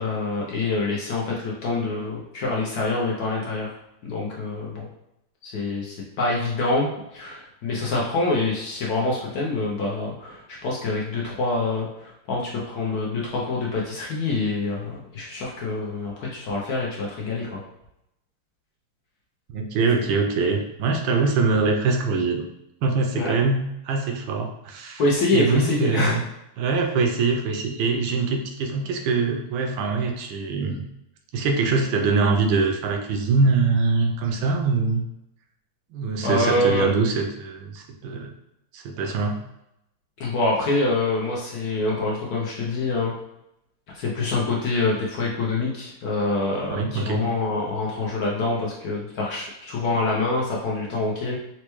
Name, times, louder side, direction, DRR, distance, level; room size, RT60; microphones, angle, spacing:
voice 1, 0.0-3.7 4.0-4.9 5.4-17.6 23.1-23.4 25.0-26.2 36.2-36.9 40.2-43.1 43.9-51.4, left 2 dB, 70° left, -3 dB, 0.9 m, -26 dB
voice 2, 19.5-22.4 22.8-25.0 25.3-26.2 26.6-30.8 31.3-35.0 35.9-38.3 38.7-39.4 46.7-47.3, right 4 dB, 75° right, 3 dB, 1.2 m, -23 dB
4.3 x 2.2 x 3.0 m, 0.84 s
omnidirectional pair, 2.2 m